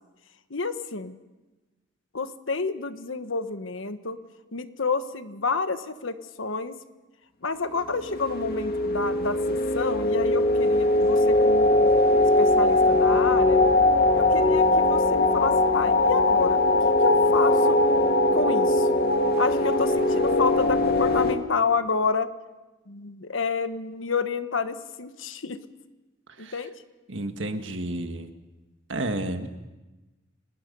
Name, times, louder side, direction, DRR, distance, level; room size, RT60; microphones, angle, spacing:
voice 1, 0.5-1.2 2.1-4.2 4.5-6.8 7.4-11.9 12.4-13.7 14.1-16.7 17.0-17.8 18.3-18.9 19.4-22.3 22.9-25.6 26.4-26.7, left 4 dB, 75° left, 10 dB, 1.3 m, -29 dB
sound 1, 8.0-21.4, left 2 dB, 50° left, 2.0 m, -21 dB
voice 2, 27.1-28.3 28.9-29.5, right 1 dB, 65° right, 7 dB, 1.7 m, -31 dB
29.5 x 19.5 x 5.5 m, 1.1 s
head